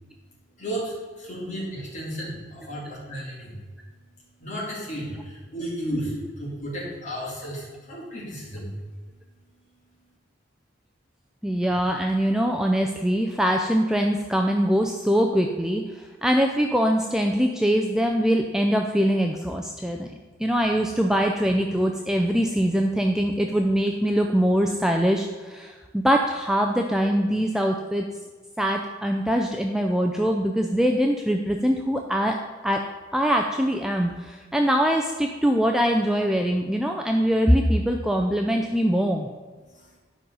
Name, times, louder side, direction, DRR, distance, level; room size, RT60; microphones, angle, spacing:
voice 1, 0.6-3.6 4.4-8.7 39.7-39.9, equal, 35° left, -6 dB, 3.4 m, -33 dB
voice 2, 11.4-28.0 28.6-32.4 32.6-32.8 33.1-39.3, equal, 5° right, 2 dB, 0.4 m, -23 dB
11.0 x 5.3 x 5.5 m, 1.4 s
head